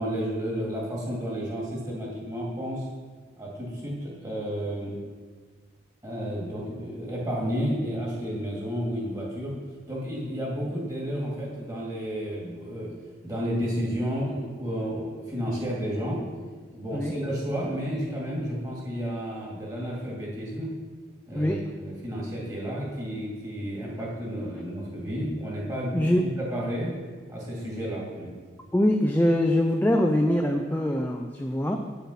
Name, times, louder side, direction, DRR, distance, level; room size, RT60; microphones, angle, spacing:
voice 1, 0.0-2.9 3.4-4.9 6.0-9.5 9.9-12.9 13.2-16.2 16.7-20.7 21.3-26.9 27.3-28.3, equal, 20° right, -4 dB, 2.3 m, -31 dB
voice 2, 25.9-26.3 28.7-31.8, left 1 dB, 10° left, 3 dB, 0.4 m, -23 dB
9.1 x 7.1 x 5.6 m, 1.5 s
head